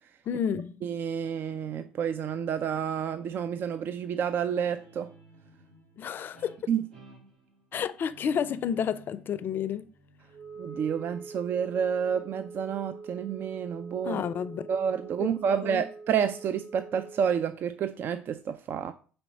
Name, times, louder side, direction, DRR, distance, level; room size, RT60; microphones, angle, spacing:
voice 1, 0.3-0.8 6.0-6.6 7.7-9.8 14.0-14.6 15.2-15.8, left 8 dB, 45° left, 0.5 m, -31 dB
voice 2, 0.8-5.1 6.7-6.9 10.6-14.2 14.7-18.9, right 8 dB, 45° right, 0.4 m, -29 dB
Guitar, 4.4-11.6, right 1 dB, 85° right, 2.2 m, -56 dB
Wind instrument woodwind instrument, 10.3-17.4, right 4 dB, 65° right, 2.2 m, -45 dB
4.3 x 4.2 x 5.3 m
hypercardioid pair, 55°, 5 cm